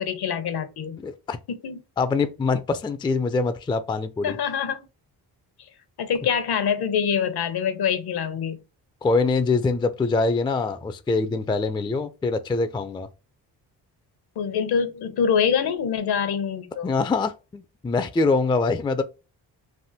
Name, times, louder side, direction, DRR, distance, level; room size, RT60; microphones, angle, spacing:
voice 1, 0.0-1.0 1.5-1.8 4.2-4.8 6.0-8.6 14.4-16.9, left 7 dB, 65° left, 0.7 m, -25 dB
voice 2, 1.0-1.4 2.0-4.4 9.0-13.1 16.8-19.0, left 3 dB, 10° left, 0.3 m, -24 dB
3.4 x 2.1 x 2.7 m
cardioid pair, 55°, 42 cm